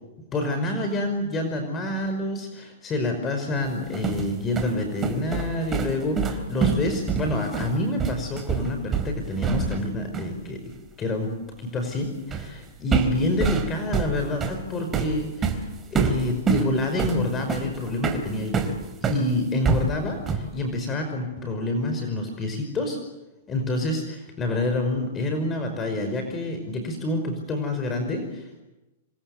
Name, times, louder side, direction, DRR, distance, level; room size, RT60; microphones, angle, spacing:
voice 1, 0.3-10.6 11.0-11.3 11.6-18.7 19.0-23.0 23.5-28.6, left 1 dB, 20° left, 5 dB, 5.4 m, -27 dB
sound 1, 3.7-9.9 10.1-10.4 12.3-12.6 12.9-19.2 19.6-20.6, right 5 dB, 20° right, 3.9 m, -26 dB
27.5 x 24.5 x 8.0 m, 1.0 s
hypercardioid pair, 135°, 0 cm